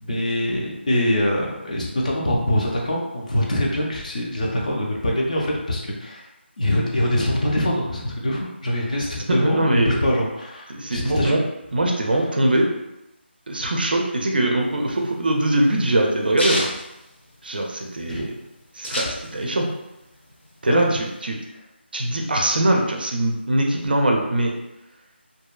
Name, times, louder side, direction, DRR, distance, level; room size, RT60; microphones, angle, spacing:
voice 1, 0.0-6.2 6.6-11.4 18.1-18.3 20.7-20.9, left 1 dB, 40° left, -2 dB, 0.4 m, -23 dB
voice 2, 9.0-10.0 10.7-11.4 11.7-12.7 13.5-16.7 17.4-18.3 18.7-19.7 20.6-21.4 21.9-24.5, right 1 dB, 50° right, 1 dB, 0.4 m, -22 dB
sound 1, 14.6-17.8 18.1-18.2 18.4-19.7 20.0-21.2, left 1 dB, 70° left, 0.9 m, -29 dB
2.7 x 2.3 x 2.2 m, 0.93 s
figure-of-eight pair, 175°, 6 cm